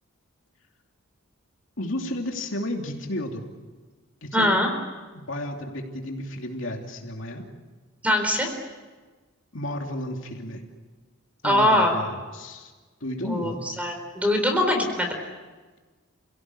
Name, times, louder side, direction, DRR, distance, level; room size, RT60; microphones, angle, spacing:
voice 1, 1.8-3.5 4.2-4.5 5.1-7.5 9.5-10.7 11.4-12.7 13.0-13.6, left 1 dB, 60° left, 2 dB, 2.9 m, -32 dB
voice 2, 4.3-4.7 8.0-8.5 11.4-11.9 13.2-15.2, left 1 dB, 5° right, 4 dB, 4.1 m, -22 dB
29.0 x 17.0 x 9.9 m, 1.3 s
head